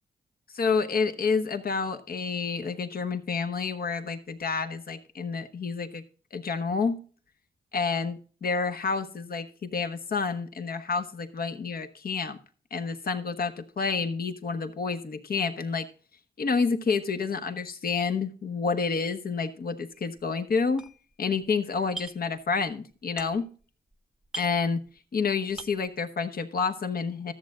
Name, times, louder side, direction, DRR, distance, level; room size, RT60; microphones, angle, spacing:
voice 1, 0.5-6.0 6.3-7.0 7.7-12.4 12.7-15.9 16.4-20.8 21.2-23.5 24.4-24.8 25.1-27.3, left 5 dB, 60° left, 7 dB, 1.3 m, -29 dB
sound 1, 19.9-20.2 20.5-21.5 21.7-22.4 22.7-23.7 23.9-24.0 24.2-25.2 25.5-25.9, right 3 dB, 5° right, 0.9 m, -42 dB
13.5 x 7.5 x 3.8 m, 0.39 s
cardioid pair, 65°, 18 cm